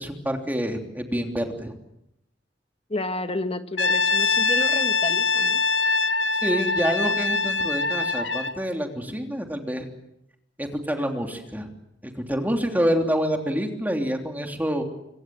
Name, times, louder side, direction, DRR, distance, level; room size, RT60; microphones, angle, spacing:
voice 1, 0.0-1.7 6.4-9.9 10.6-11.7 12.0-14.8, equal, 10° right, 3 dB, 3.2 m, -27 dB
voice 2, 2.9-5.6, left 2 dB, 35° left, 9 dB, 1.5 m, -30 dB
Brass instrument, 3.8-8.6, left 4 dB, 85° left, 1.4 m, -23 dB
26.5 x 25.5 x 7.8 m, 0.81 s
head